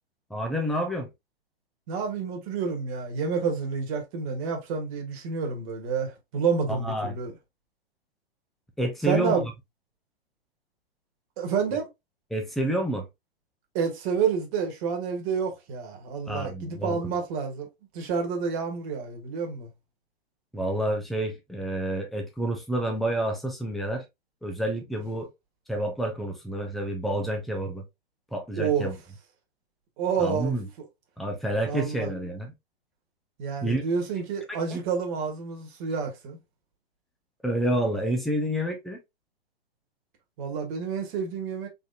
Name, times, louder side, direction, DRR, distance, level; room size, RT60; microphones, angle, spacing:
voice 1, 0.3-1.1 6.7-7.2 8.8-9.4 12.3-13.1 16.3-17.0 20.5-24.0 24.4-25.3 25.7-27.8 28.3-29.0 30.2-30.7 31.2-32.5 33.6-33.8 34.2-34.3 34.7-34.8 37.4-39.0, right 1 dB, ahead, 0.4 m, -29 dB
voice 2, 1.9-7.3 9.0-9.5 11.4-11.9 13.7-17.7 17.9-19.7 28.6-28.9 30.0-30.5 31.6-32.1 33.4-36.4 40.4-41.7, right 6 dB, 35° right, 1.3 m, -29 dB
4.0 x 3.4 x 2.3 m
figure-of-eight pair, 115°, 31 cm